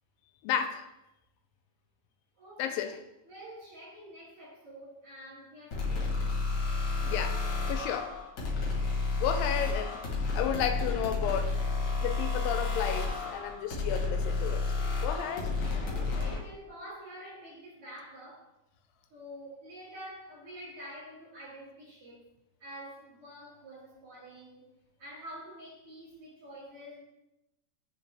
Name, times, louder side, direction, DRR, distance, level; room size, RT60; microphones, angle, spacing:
voice 1, 0.4-0.9 2.6-3.0 7.0-7.4 7.7-8.2 9.2-11.6 12.0-14.7 15.0-15.5, left 8 dB, 85° left, 7 dB, 2.3 m, -32 dB
voice 2, 2.4-3.0 3.2-6.3 13.5-13.7 15.8-18.5 19.1-22.2 22.6-24.7 25.0-27.0, equal, 45° right, -8 dB, 2.5 m, -47 dB
sound 1, 5.7-16.4, left 3 dB, 60° left, 1.4 m, -31 dB
9.7 x 3.3 x 3.3 m, 0.90 s
omnidirectional pair, 4.0 m